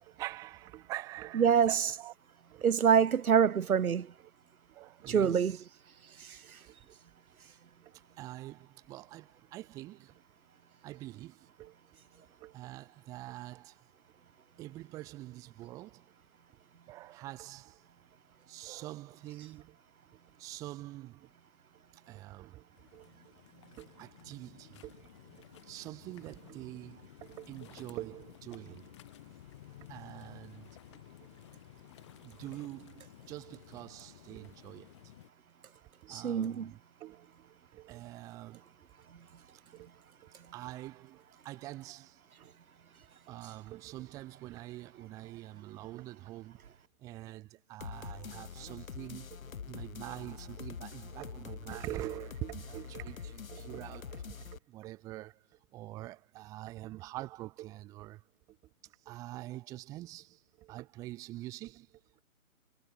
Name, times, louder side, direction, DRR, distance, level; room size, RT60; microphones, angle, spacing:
voice 1, 0.0-2.7 4.2-4.3 4.7-5.7 6.4-7.0 7.8-10.2 10.8-11.8 12.4-13.9 14.6-16.1 16.5-17.9 18.5-19.8 20.1-21.3 21.9-23.3 23.8-28.9 29.8-31.3 32.2-35.0 36.0-39.1 39.5-39.9 40.2-42.5 43.3-58.6 58.8-62.2, right 16 dB, 10° right, 1.9 m, -46 dB
voice 2, 1.4-1.7 2.6-4.1 5.1-5.5 36.1-36.7, right 7 dB, 80° right, 1.1 m, -25 dB
sound 1, 22.7-35.3, left 14 dB, 20° left, 2.8 m, -55 dB
sound 2, 47.8-54.6, left 7 dB, 70° left, 1.4 m, -45 dB
hypercardioid pair, 170°, 43 cm